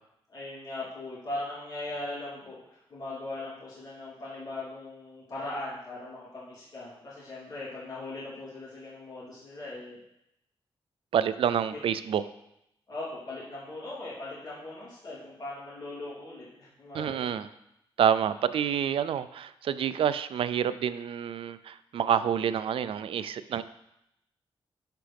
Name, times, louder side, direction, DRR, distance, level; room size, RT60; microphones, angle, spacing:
voice 1, 0.3-10.0 12.9-17.3, left 2 dB, 45° left, -9 dB, 3.2 m, -39 dB
voice 2, 11.1-12.2 16.9-17.5 18.0-23.6, right 9 dB, 75° right, 14 dB, 0.4 m, -28 dB
11.5 x 4.9 x 3.5 m, 0.82 s
wide cardioid pair, 145°, 10 cm